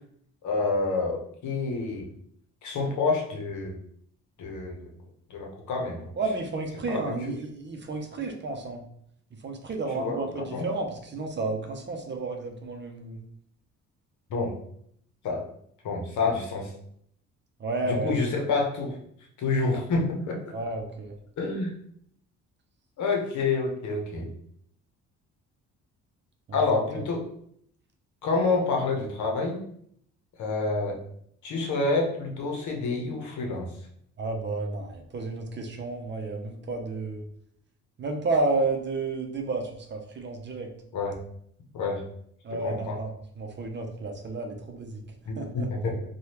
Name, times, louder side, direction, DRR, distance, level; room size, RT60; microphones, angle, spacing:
voice 1, 0.4-2.1 2.6-3.8 4.4-4.9 5.3-6.1 6.9-7.2 10.0-10.7 14.3-14.5 15.2-15.4 15.8-16.7 17.9-19.0 19.4-20.4 21.4-21.7 23.0-24.3 26.5-27.2 28.2-29.6 30.4-31.0 31.4-33.7 40.9-41.2 41.7-42.0 42.6-43.0 45.3-46.0, left 3 dB, 70° left, 0 dB, 0.9 m, -28 dB
voice 2, 6.2-8.8 9.4-13.2 17.6-18.1 20.5-21.1 26.5-27.0 34.2-37.3 38.0-40.7 42.4-43.1 43.4-45.0 45.4-45.7, right 3 dB, 35° right, 3 dB, 0.6 m, -31 dB
3.2 x 2.3 x 2.8 m, 0.67 s
cardioid pair, 90°, 30 cm